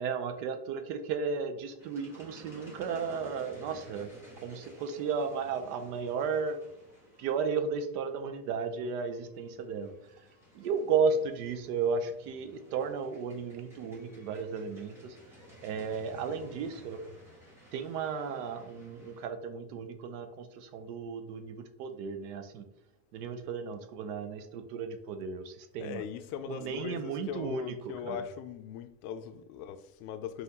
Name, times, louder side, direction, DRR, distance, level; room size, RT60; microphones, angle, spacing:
voice 1, 0.0-4.1 4.4-6.6 7.2-9.9 10.5-15.2 15.6-17.1 17.7-22.6 23.1-26.0 26.5-28.2, right 5 dB, 80° right, 0.8 m, -34 dB
sound 1, 1.8-19.3, equal, 5° right, 0.3 m, -54 dB
voice 2, 25.8-30.4, left 8 dB, 75° left, 0.6 m, -40 dB
5.5 x 2.6 x 2.8 m
cardioid pair, 175°, 46 cm